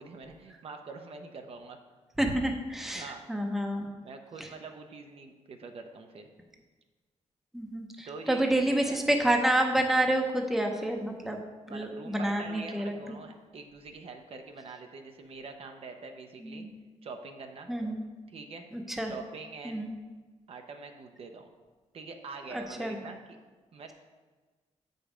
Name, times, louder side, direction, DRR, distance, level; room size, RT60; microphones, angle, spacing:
voice 1, 0.0-1.8 2.9-3.2 4.0-6.3 8.1-9.0 11.7-16.7 17.0-17.7 18.3-18.7 19.1-19.8 20.5-21.5 21.9-23.4 23.7-23.9, right 4 dB, 55° right, 5 dB, 0.7 m, -44 dB
voice 2, 2.2-3.9 7.5-11.4 11.7-12.9 16.4-16.7 17.7-18.0 18.7-19.1 19.6-19.9 22.5-23.0, right 1 dB, 5° right, 2 dB, 0.7 m, -29 dB
7.7 x 5.2 x 5.0 m, 1.3 s
wide cardioid pair, 145°, 12 cm